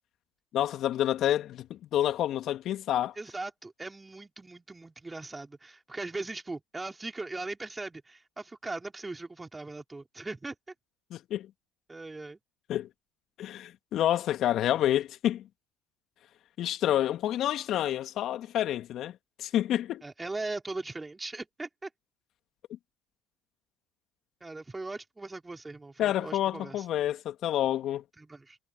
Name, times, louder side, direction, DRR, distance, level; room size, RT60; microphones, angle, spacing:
voice 1, 0.5-3.1 11.1-11.5 12.7-12.9 13.4-15.4 16.6-20.0 26.0-28.0, left 12 dB, 55° left, 2.4 m, -28 dB
voice 2, 3.2-10.6 11.9-12.4 20.0-21.9 24.4-26.9 28.2-28.6, right 3 dB, 15° right, 5.0 m, -39 dB
hypercardioid pair, 75°, 0 cm